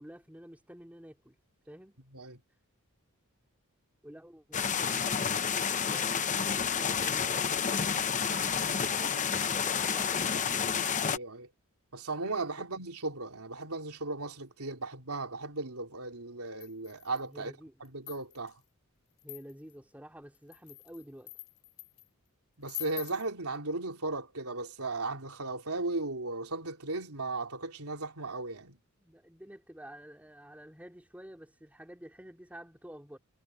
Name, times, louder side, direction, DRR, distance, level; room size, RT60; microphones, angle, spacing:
voice 1, 0.0-1.3 1.7-2.0 4.0-11.0 12.6-12.7 17.2-17.7 19.2-21.3 29.0-33.2, equal, 5° right, 2.8 m, -50 dB
sound 1, 4.5-11.2, left 7 dB, 35° left, 0.8 m, -30 dB
voice 2, 11.1-11.5 11.9-17.5 17.8-18.5 22.6-28.8, right 3 dB, 80° right, 3.3 m, -36 dB
sound 2, 16.6-17.3 17.8-18.5 19.2-19.7 20.3-22.1 22.7-23.3, left 21 dB, 85° left, 6.8 m, -45 dB
head